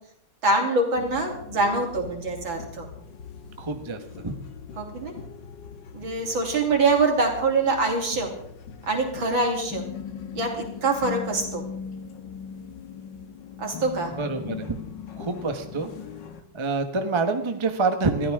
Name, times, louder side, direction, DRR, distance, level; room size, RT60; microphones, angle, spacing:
voice 1, 0.4-2.9 4.8-5.1 5.9-8.3 8.9-9.9 10.3-11.6 13.6-14.1, right 3 dB, 75° right, 1 dB, 3.8 m, -24 dB
sound 1, 0.9-16.4, left 7 dB, 65° left, 1.8 m, -40 dB
voice 2, 3.6-4.3 14.2-14.7 15.2-15.9 16.5-18.3, right 3 dB, 20° right, 6 dB, 1.0 m, -26 dB
22.5 x 14.0 x 3.7 m, 0.69 s
omnidirectional pair, 2.2 m